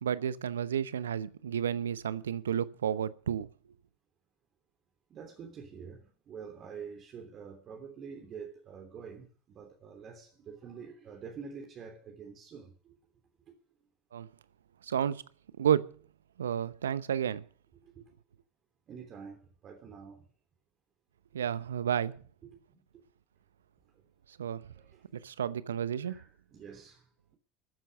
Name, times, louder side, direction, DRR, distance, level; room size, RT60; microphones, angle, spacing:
voice 1, 0.0-3.5 14.1-14.3 14.8-15.2 15.6-15.9 16.4-17.4 21.3-22.1 24.4-24.6 25.2-26.2, right 9 dB, 80° right, 0.8 m, -31 dB
voice 2, 5.1-12.9 17.7-18.0 18.9-20.2 22.4-22.8 23.9-24.0 24.7-25.0 26.0-27.4, right 6 dB, 45° right, 3.3 m, -47 dB
13.5 x 10.0 x 6.6 m
figure-of-eight pair, 65°, 0 cm